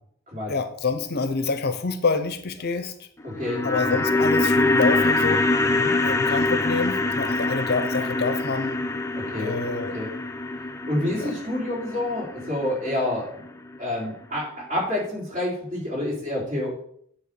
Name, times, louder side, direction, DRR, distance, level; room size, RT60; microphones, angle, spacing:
voice 1, 0.5-3.1 3.6-5.4 6.0-8.8 9.4-9.9 11.2-11.3, left 4 dB, 50° left, 9 dB, 0.7 m, -27 dB
sound 1, 3.2-13.5 13.7-13.8, left 2 dB, 15° left, 0.5 m, -24 dB
voice 2, 3.2-3.6 5.6-5.9 9.2-9.5 9.9-10.1 10.9-13.3 13.8-16.7, left 1 dB, 40° right, -5 dB, 3.9 m, -28 dB
9.5 x 3.5 x 6.8 m, 0.67 s
head